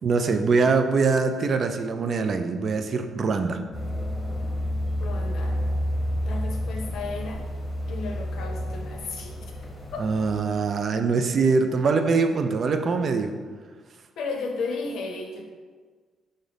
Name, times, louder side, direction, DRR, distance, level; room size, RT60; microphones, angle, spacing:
voice 1, 0.0-3.6 10.0-13.3, right 4 dB, 50° right, 7 dB, 0.3 m, -23 dB
sound 1, 3.7-10.4, left 1 dB, 20° left, 0.9 m, -30 dB
voice 2, 5.0-5.6 6.2-7.4 7.9-9.4 9.9-10.0 14.2-15.5, left 4 dB, 80° left, 1 dB, 0.6 m, -33 dB
3.8 x 2.6 x 3.3 m, 1.5 s
cardioid pair, 90°, 0 cm